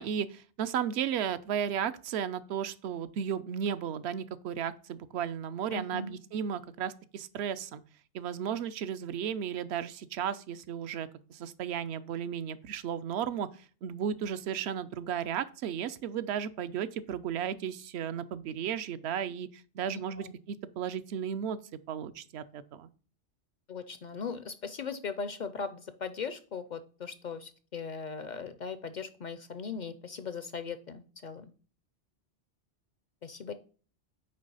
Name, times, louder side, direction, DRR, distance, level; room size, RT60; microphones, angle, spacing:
voice 1, 0.0-7.8 8.1-21.6 21.9-22.9, right 8 dB, 70° right, 14 dB, 0.8 m, -34 dB
voice 2, 5.7-6.2 19.9-20.3 23.7-31.5 33.2-33.5, left 5 dB, 55° left, 11 dB, 0.5 m, -39 dB
8.8 x 3.3 x 5.3 m, 0.41 s
omnidirectional pair, 1.2 m